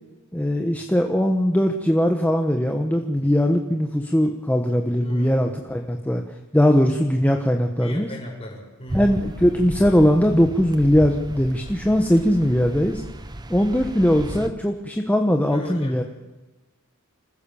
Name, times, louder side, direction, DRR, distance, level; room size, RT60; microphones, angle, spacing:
voice 1, 0.3-6.2 6.5-8.1 8.9-13.0 13.5-16.0, equal, 5° left, 3 dB, 1.2 m, -20 dB
voice 2, 5.0-5.6 7.8-9.1 15.5-16.0, left 1 dB, 30° left, -1 dB, 6.2 m, -36 dB
sound 1, 8.9-14.5, right 1 dB, 20° right, 0.9 m, -35 dB
26.0 x 15.5 x 7.1 m, 1.1 s
head